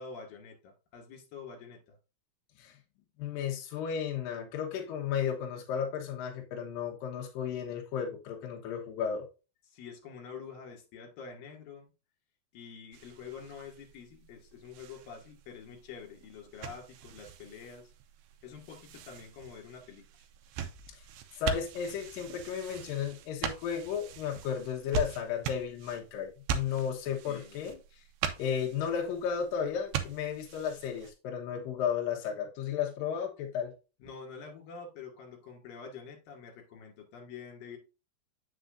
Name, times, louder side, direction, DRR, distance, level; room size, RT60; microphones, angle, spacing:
voice 1, 0.0-2.0 9.7-11.9 12.5-17.9 18.4-20.1 27.3-27.6 34.0-37.8, left 5 dB, 55° left, 3.4 m, -47 dB
voice 2, 3.2-9.3 20.9-21.0 21.4-28.0 28.4-33.7, left 8 dB, 75° left, 2.0 m, -34 dB
sound 1, 12.9-31.1, right 6 dB, 85° right, 2.3 m, -41 dB
7.9 x 6.8 x 2.6 m
omnidirectional pair, 5.5 m